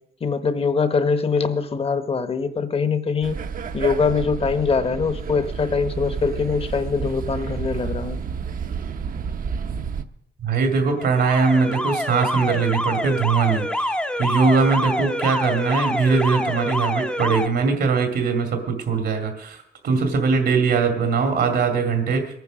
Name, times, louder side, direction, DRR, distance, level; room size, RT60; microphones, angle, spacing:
voice 1, 0.2-3.4 3.7-8.2, left 5 dB, 35° left, 11 dB, 1.0 m, -23 dB
sound 1, 3.2-10.0, right 6 dB, 55° right, 0.8 m, -30 dB
voice 2, 10.4-18.6 18.9-22.3, right 5 dB, 80° right, 5 dB, 2.1 m, -21 dB
Alarm, 11.0-17.5, left 1 dB, 5° left, 0.6 m, -26 dB
21.5 x 9.3 x 6.2 m, 0.78 s
wide cardioid pair, 140°, 17 cm